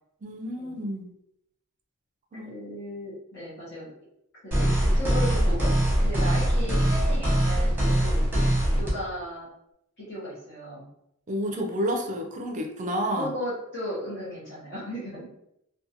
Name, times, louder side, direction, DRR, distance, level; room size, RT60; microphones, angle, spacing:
voice 1, 0.2-1.1 2.3-2.5 11.3-13.3, equal, 35° right, 4 dB, 0.4 m, -30 dB
voice 2, 2.3-3.9 4.4-5.7 6.0-8.2 8.7-9.5 10.0-10.8 13.1-15.3, equal, 55° left, -9 dB, 0.9 m, -35 dB
sound 1, 4.5-8.9, right 1 dB, 10° right, 0.9 m, -22 dB
2.5 x 2.2 x 2.7 m, 0.79 s
head